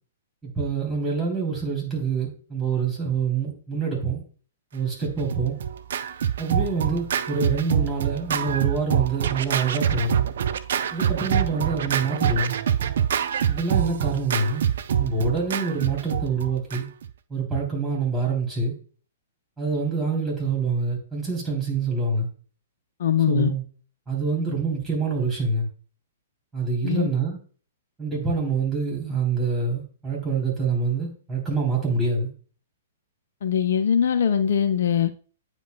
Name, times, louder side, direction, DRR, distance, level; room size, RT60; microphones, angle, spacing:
voice 1, 0.4-4.2 4.7-5.6 6.4-10.2 10.9-12.6 13.5-14.6 15.0-16.9 17.3-18.7 19.6-22.3 23.3-23.6 24.1-25.7 26.5-27.4 28.0-32.3, right 4 dB, 10° right, 3.3 m, -26 dB
Scratching (performance technique), 5.0-17.1, right 9 dB, 55° right, 0.4 m, -25 dB
voice 2, 23.0-23.5 26.8-27.1 33.4-35.1, left 8 dB, 55° left, 0.4 m, -21 dB
9.0 x 5.1 x 2.3 m
figure-of-eight pair, 110°, 0 cm